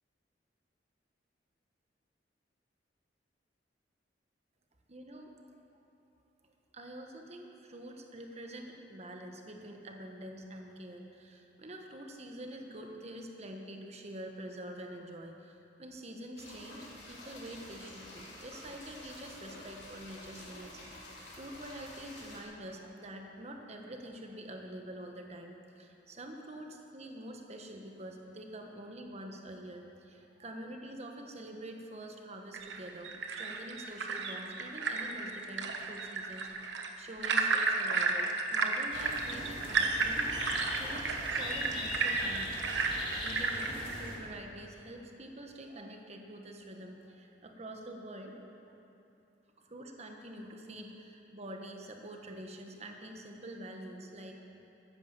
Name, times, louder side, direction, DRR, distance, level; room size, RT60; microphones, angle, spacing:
voice 1, 4.9-5.6 6.7-21.0 21.3-40.2 40.7-42.5 43.2-48.3 49.6-54.4, right 1 dB, 35° right, 3 dB, 1.4 m, -46 dB
sound 1, 16.4-22.4, left 1 dB, 70° left, 3.2 m, -49 dB
sound 2, 32.5-44.1, right 4 dB, 80° right, 1.2 m, -33 dB
sound 3, 38.9-44.2, left 1 dB, 30° left, 2.6 m, -41 dB
14.0 x 10.0 x 7.4 m, 2.9 s
head